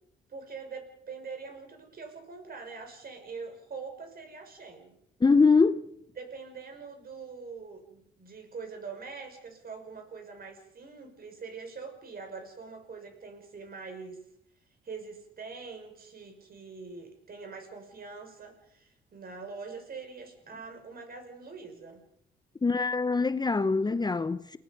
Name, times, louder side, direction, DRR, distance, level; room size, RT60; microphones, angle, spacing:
voice 1, 0.3-5.0 6.1-14.2 14.8-22.0, right 4 dB, 50° right, 6.2 m, -43 dB
voice 2, 5.2-5.8 22.6-24.6, left 4 dB, 20° left, 0.8 m, -23 dB
29.5 x 19.0 x 5.3 m
cardioid pair, 90°, 20 cm